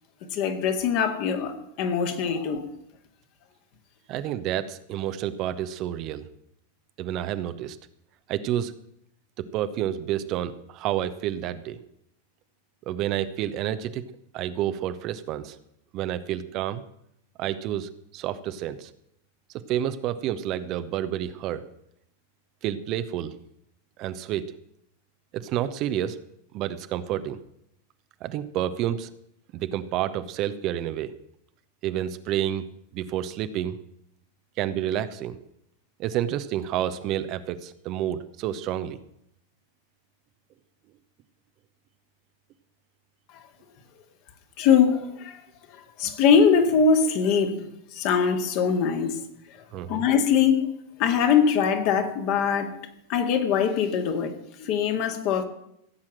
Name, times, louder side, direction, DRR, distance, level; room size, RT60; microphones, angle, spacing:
voice 1, 0.3-2.6 44.6-45.4 45.7-49.2 49.5-49.6 49.9-50.6 51.0-52.7 53.1-54.3 54.6-55.4, left 6 dB, 45° left, 5 dB, 2.0 m, -22 dB
voice 2, 4.1-6.3 7.0-7.8 8.3-8.7 9.5-11.8 12.9-14.0 14.3-15.6 15.9-16.8 17.4-18.9 19.7-21.6 22.6-23.3 24.0-24.5 25.3-26.2 26.5-27.4 28.2-29.1 29.5-31.1 31.8-32.7 32.9-33.8 34.6-35.4 36.0-39.0 49.7-50.0, right 11 dB, 40° right, 12 dB, 0.8 m, -29 dB
16.0 x 7.4 x 7.7 m, 0.76 s
figure-of-eight pair, 90°, 0 cm